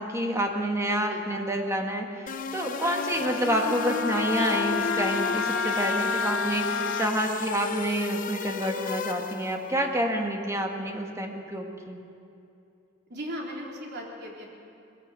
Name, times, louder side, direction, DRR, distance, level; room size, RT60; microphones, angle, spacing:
voice 1, 0.0-12.0, equal, 15° right, 2 dB, 1.8 m, -28 dB
sound 1, 2.3-9.7, left 4 dB, 45° left, 0.7 m, -33 dB
Wind instrument woodwind instrument, 2.8-7.1, left 5 dB, 80° left, 0.9 m, -30 dB
voice 2, 13.1-14.5, equal, 55° right, -2 dB, 3.8 m, -37 dB
20.0 x 16.0 x 8.4 m, 2.6 s
head